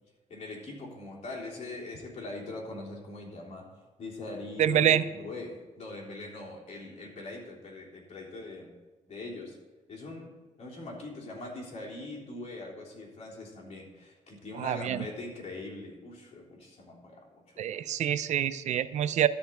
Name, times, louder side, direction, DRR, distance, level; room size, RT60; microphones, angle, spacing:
voice 1, 0.3-3.7 4.0-8.7 9.1-9.6 9.9-17.9, left 2 dB, 55° left, -3 dB, 3.5 m, -42 dB
voice 2, 4.6-5.0 14.5-15.0 17.6-19.3, right 10 dB, 70° right, 14 dB, 0.5 m, -26 dB
13.0 x 4.5 x 8.0 m, 1.3 s
cardioid pair, 100°, 13 cm